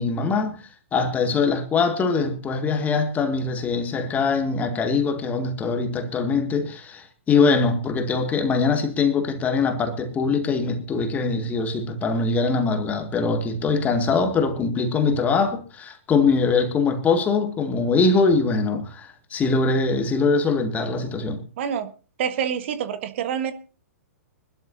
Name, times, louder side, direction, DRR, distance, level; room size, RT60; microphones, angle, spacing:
voice 1, 0.0-21.4, left 4 dB, 20° left, 1.9 m, -22 dB
voice 2, 21.6-21.9 22.2-23.5, right 8 dB, 50° right, 1.5 m, -26 dB
24.5 x 12.5 x 2.7 m
figure-of-eight pair, 115°, 8 cm